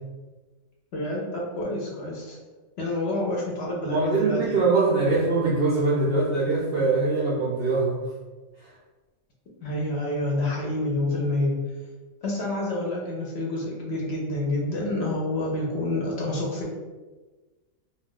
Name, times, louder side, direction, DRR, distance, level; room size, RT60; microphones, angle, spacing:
voice 1, 0.9-2.4 2.8-4.6 5.0-5.2 9.6-11.6 12.2-16.7, left 1 dB, 60° left, -3 dB, 0.8 m, -28 dB
voice 2, 3.9-8.0 8.6-8.7, right 3 dB, 65° right, -5 dB, 0.6 m, -23 dB
2.3 x 2.2 x 3.6 m, 1.2 s
omnidirectional pair, 1.4 m